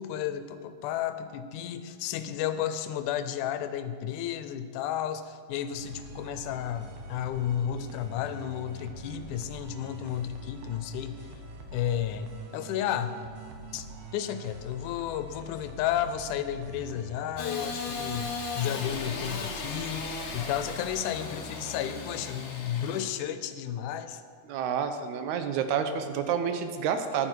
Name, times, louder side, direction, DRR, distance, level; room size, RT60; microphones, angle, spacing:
voice 1, 0.0-11.2 11.7-13.2 13.7-13.9 14.1-24.2, left 10 dB, 85° left, 11 dB, 2.1 m, -32 dB
sound 1, 5.7-23.2, right 2 dB, 60° right, 1.9 m, -45 dB
Engine starting / Sawing, 17.4-23.0, left 4 dB, 60° left, 1.3 m, -37 dB
voice 2, 24.5-27.3, right 7 dB, 80° right, 8 dB, 2.0 m, -29 dB
10.5 x 9.9 x 4.6 m, 2.2 s
omnidirectional pair, 3.5 m